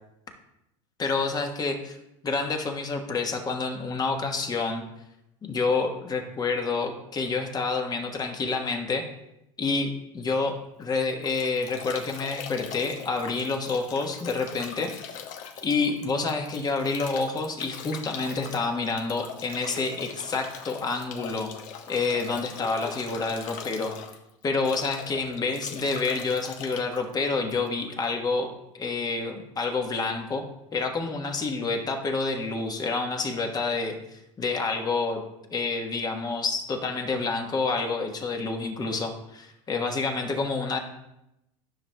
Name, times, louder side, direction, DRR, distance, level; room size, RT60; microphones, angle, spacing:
voice 1, 1.0-2.0 2.2-4.8 5.4-9.1 9.6-15.2 15.6-21.5 21.9-23.9 24.4-28.5 28.7-30.4 30.7-35.2 35.5-40.8, left 4 dB, 25° left, 4 dB, 1.2 m, -28 dB
Bathtub (filling or washing) / Drip / Trickle dribble, 10.8-28.0, left 7 dB, 50° left, 1.0 m, -41 dB
13.0 x 5.9 x 2.2 m, 0.88 s
hypercardioid pair, 105°, 17 cm